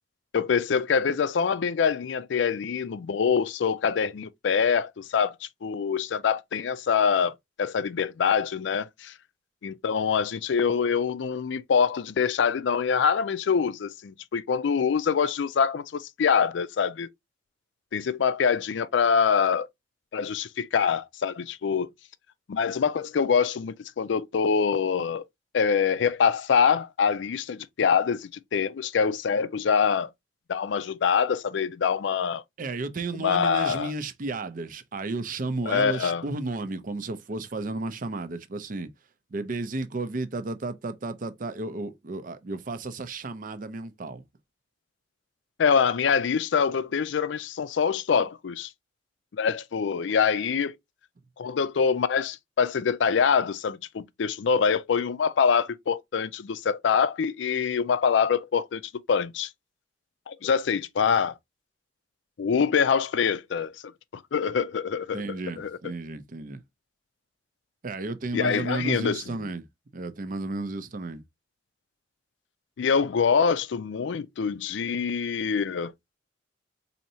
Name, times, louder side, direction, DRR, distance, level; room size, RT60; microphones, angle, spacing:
voice 1, 0.3-9.1 9.6-17.1 17.9-19.7 20.1-21.9 22.5-25.2 25.5-30.1 30.5-32.4 33.1-33.9 35.7-36.2 45.6-48.7 49.3-50.7 51.4-58.8 59.1-59.5 60.3-61.3 62.4-65.8 68.3-69.4 72.8-75.9, left 6 dB, 75° left, 0.4 m, -25 dB
voice 2, 32.6-38.9 39.3-44.2 65.1-66.6 67.8-69.6 69.9-71.2, right 3 dB, 45° right, 0.5 m, -33 dB
4.3 x 2.7 x 2.6 m
head